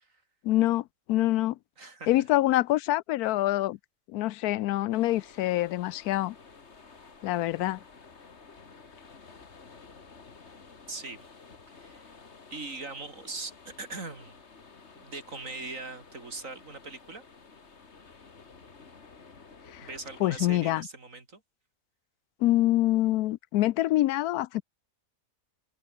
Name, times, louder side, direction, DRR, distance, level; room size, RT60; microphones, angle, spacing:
voice 1, 0.4-1.6 2.1-3.8 4.1-6.4 7.2-7.8 19.7-19.9 20.2-20.8 22.4-24.6, left 15 dB, 90° left, 1.1 m, -25 dB
voice 2, 1.8-2.1 10.9-11.3 11.7-12.0 12.5-14.3 15.0-17.2 19.8-21.4, right 3 dB, 60° right, 4.0 m, -40 dB
sound 1, 4.9-20.8, left 4 dB, 50° left, 2.2 m, -52 dB
open air
omnidirectional pair, 1.6 m